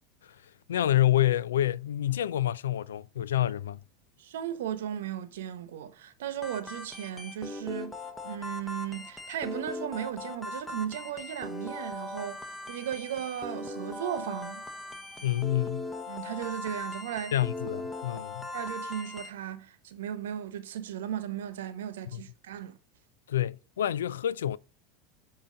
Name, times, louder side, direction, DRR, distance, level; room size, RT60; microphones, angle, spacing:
voice 1, 0.7-3.8 15.2-15.9 17.3-18.5 22.1-22.2 23.3-24.6, left 12 dB, 80° left, 0.3 m, -27 dB
voice 2, 4.2-7.9 8.2-12.4 12.7-14.6 16.1-17.4 18.5-22.8, right 10 dB, 75° right, 1.0 m, -36 dB
sound 1, 6.4-19.3, left 2 dB, 10° left, 1.1 m, -39 dB
8.5 x 2.8 x 5.1 m
hypercardioid pair, 90°, 0 cm